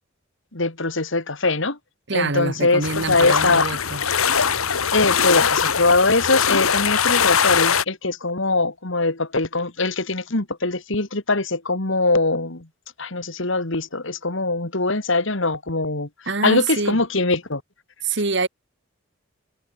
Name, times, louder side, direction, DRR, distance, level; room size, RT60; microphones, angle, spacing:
voice 1, 0.5-1.8 2.1-3.7 4.9-12.7 13.0-16.1 16.4-17.6, left 3 dB, 60° left, 2.1 m, -22 dB
voice 2, 2.1-4.0 16.3-17.0 18.0-18.5, right 3 dB, 55° right, 1.6 m, -25 dB
sound 1, 2.8-7.8, left 7 dB, 80° left, 1.8 m, -21 dB
head